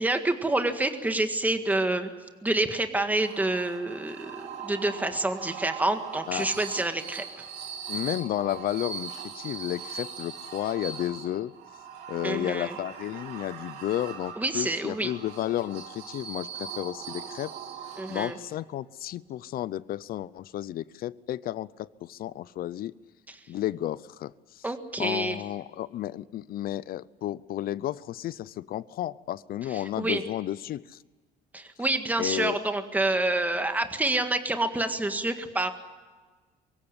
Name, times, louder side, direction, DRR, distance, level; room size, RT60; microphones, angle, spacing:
voice 1, 0.0-2.1 2.4-7.2 12.2-12.7 14.4-15.1 18.0-18.4 23.3-23.4 24.6-25.4 29.7-30.2 31.5-35.7, right 2 dB, 10° right, 7 dB, 1.8 m, -28 dB
sound 1, 2.9-18.7, right 6 dB, 85° right, 3.2 m, -41 dB
voice 2, 7.9-11.5 12.1-17.5 18.1-22.9 23.5-24.6 25.0-30.8 32.2-32.6, left 13 dB, 60° left, 19 dB, 0.6 m, -32 dB
24.0 x 16.0 x 9.9 m, 1.4 s
cardioid pair, 110°, 17 cm